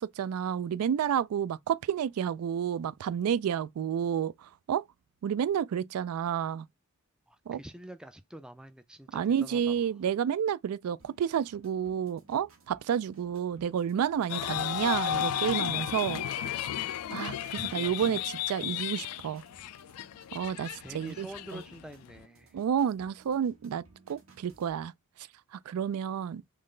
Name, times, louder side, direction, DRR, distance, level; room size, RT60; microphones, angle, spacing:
voice 1, 0.0-4.8 5.2-6.7 7.5-7.6 9.1-16.3 17.1-19.4 20.3-21.3 21.5-21.6 22.5-24.9 25.5-26.4, right 8 dB, 85° right, 0.3 m, -30 dB
voice 2, 7.3-9.9 17.5-18.2 20.8-22.6, right 1 dB, 5° right, 0.3 m, -46 dB
sound 1, 11.0-24.7, right 3 dB, 70° right, 1.4 m, -61 dB
sound 2, 14.3-22.2, left 11 dB, 90° left, 0.4 m, -34 dB
3.9 x 3.1 x 3.7 m
head